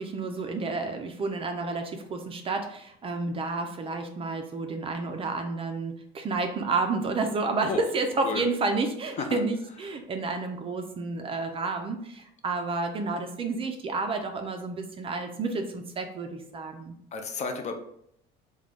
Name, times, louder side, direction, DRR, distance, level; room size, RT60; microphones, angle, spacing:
voice 1, 0.0-16.9, right 3 dB, 30° right, 5 dB, 0.4 m, -30 dB
voice 2, 17.1-17.7, left 5 dB, 35° left, 6 dB, 0.5 m, -31 dB
3.7 x 2.2 x 3.4 m, 0.73 s
cardioid pair, 135°, 19 cm